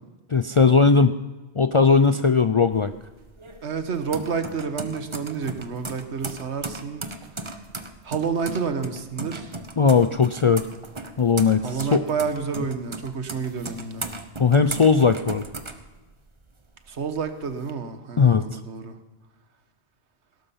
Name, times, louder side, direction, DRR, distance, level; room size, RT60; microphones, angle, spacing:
voice 1, 0.3-1.2 1.6-2.9 9.8-10.7 11.2-12.0 12.6-12.7 14.4-15.5 18.2-18.6, left 5 dB, 50° left, 10 dB, 0.3 m, -18 dB
sound 1, 2.7-16.5 16.9-17.7, right 3 dB, 30° right, 1.0 m, -37 dB
voice 2, 3.6-7.0 7.3-7.5 8.0-9.5 11.6-14.1 16.9-18.9, right 5 dB, 85° right, 9 dB, 1.5 m, -29 dB
17.5 x 12.5 x 5.7 m, 1.2 s
omnidirectional pair, 1.1 m